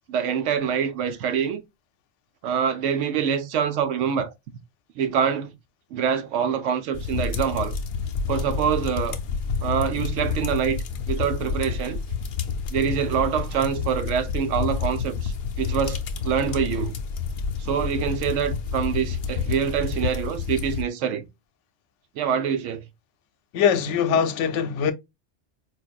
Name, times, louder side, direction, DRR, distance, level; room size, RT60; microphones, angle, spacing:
voice 1, 0.1-1.6 2.4-4.3 5.0-5.5 5.9-7.7 8.3-9.2 9.6-10.8 11.1-12.0 12.7-17.0 17.6-21.3 22.2-22.8, right 7 dB, 85° right, 1.0 m, -25 dB
sound 1, 6.9-20.8, left 5 dB, 60° left, 0.6 m, -29 dB
voice 2, 23.5-24.9, left 7 dB, 80° left, 0.9 m, -22 dB
4.7 x 2.5 x 2.3 m
omnidirectional pair, 1.2 m